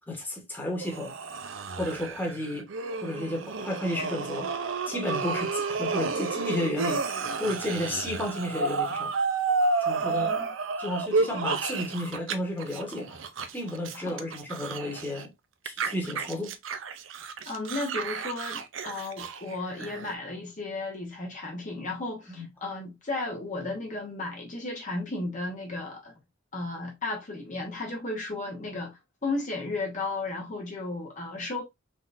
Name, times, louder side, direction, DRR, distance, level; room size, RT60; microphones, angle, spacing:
voice 1, 0.1-1.2 1.8-2.7 3.0-4.5 4.9-7.1 7.4-9.1 9.8-10.3 10.8-15.3 15.6-16.5 22.3-22.5, left 1 dB, 10° left, 1.3 m, -32 dB
sound 1, 0.8-12.3 12.6-15.3 15.7-20.1, right 4 dB, 70° right, 0.5 m, -31 dB
voice 2, 10.0-10.5 13.9-14.3 17.5-26.1 26.5-31.6, left 2 dB, 40° left, 1.0 m, -34 dB
3.8 x 3.7 x 2.5 m
head